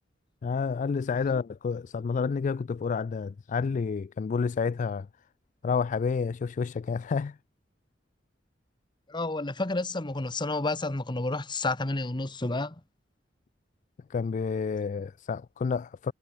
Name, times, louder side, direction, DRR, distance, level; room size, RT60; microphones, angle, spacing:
voice 1, 0.4-5.1 5.6-7.4 14.1-16.1, left 5 dB, 45° left, 0.3 m, -29 dB
voice 2, 9.1-12.7, left 2 dB, 25° left, 1.1 m, -30 dB
head